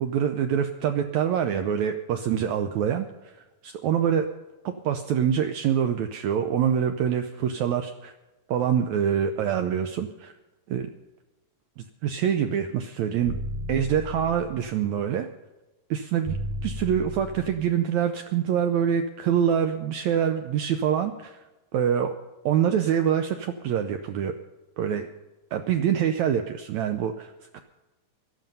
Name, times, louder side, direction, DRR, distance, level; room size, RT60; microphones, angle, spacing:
voice 1, 0.0-4.3 4.7-8.1 8.5-10.3 10.7-10.9 11.8-13.4 13.7-15.3 15.9-16.4 16.6-21.4 21.7-22.1 22.5-24.3 24.8-25.1 25.5-27.6, right 8 dB, 75° right, 7 dB, 1.7 m, -25 dB
sound 1, 13.2-14.7 16.3-17.7, equal, 60° right, 1.8 m, -34 dB
16.5 x 12.0 x 5.4 m, 1.1 s
omnidirectional pair, 4.0 m